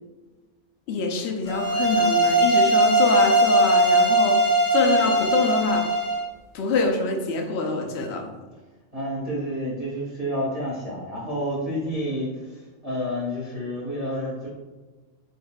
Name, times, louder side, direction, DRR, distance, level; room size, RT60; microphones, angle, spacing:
voice 1, 0.9-5.9 6.5-8.3, left 4 dB, 65° left, 3 dB, 0.7 m, -25 dB
sound 1, 1.5-6.3, right 1 dB, 80° left, 1.5 m, -20 dB
voice 2, 8.9-14.5, equal, 15° right, -6 dB, 0.8 m, -29 dB
4.2 x 3.7 x 2.3 m, 1.3 s
omnidirectional pair, 1.3 m